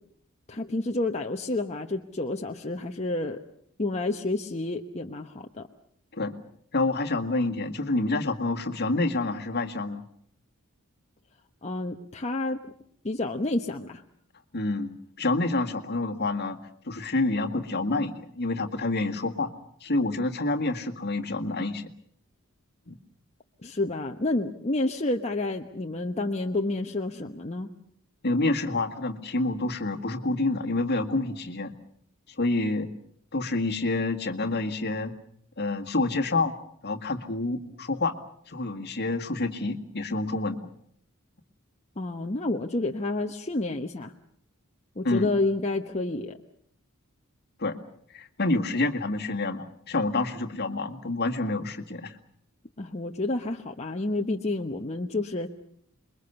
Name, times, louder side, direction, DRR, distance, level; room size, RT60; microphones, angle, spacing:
voice 1, 0.5-3.4 3.8-5.7 11.6-12.6 13.0-14.0 23.6-27.7 42.0-44.1 45.0-46.4 52.8-55.5, left 2 dB, 30° left, 3 dB, 1.0 m, -29 dB
voice 2, 6.7-10.1 14.5-16.6 16.9-19.5 19.8-21.9 22.9-23.0 28.2-31.7 32.4-32.9 33.3-35.1 35.6-36.5 36.8-38.2 38.5-40.7 45.0-45.3 47.6-47.8 48.1-52.2, left 2 dB, 50° left, 5 dB, 1.9 m, -28 dB
27.5 x 22.0 x 6.9 m, 0.66 s
head